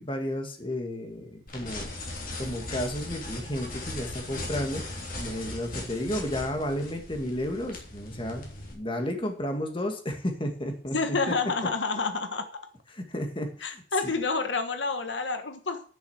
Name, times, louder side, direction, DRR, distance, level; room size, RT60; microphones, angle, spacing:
voice 1, 0.0-1.9 2.4-4.8 5.2-11.2 12.9-14.1, left 1 dB, 30° left, 4 dB, 2.1 m, -32 dB
sound 1, 1.5-8.7, left 2 dB, 50° left, 3.2 m, -38 dB
voice 2, 10.9-12.4 13.6-15.8, left 4 dB, 85° left, 8 dB, 1.3 m, -28 dB
10.5 x 6.4 x 7.4 m, 0.43 s
head